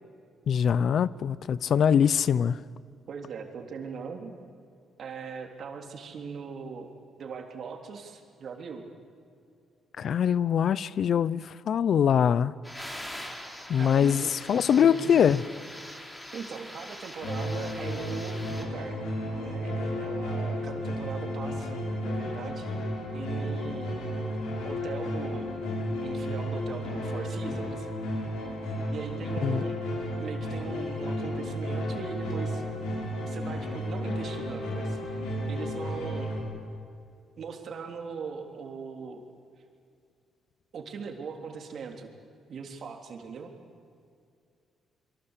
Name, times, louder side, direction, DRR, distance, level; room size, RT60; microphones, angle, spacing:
voice 1, 0.5-2.6 10.0-12.5 13.7-15.4 29.4-29.6, left 8 dB, 60° left, 0.6 m, -23 dB
voice 2, 3.1-4.3 5.0-6.9 7.2-8.8 13.8-14.3 14.7-15.4 16.3-19.0 19.3-22.7 23.1-24.0 24.6-25.5 26.0-27.9 28.9-29.8 30.2-32.6 33.3-36.3 37.4-39.2 40.7-42.1 42.5-43.5, right 5 dB, 60° right, 3.5 m, -40 dB
sound 1, 12.6-18.6, equal, 10° left, 4.0 m, -42 dB
sound 2, 17.2-36.4, equal, 90° left, 6.6 m, -33 dB
25.5 x 23.5 x 8.3 m
cardioid pair, 90°, 0 cm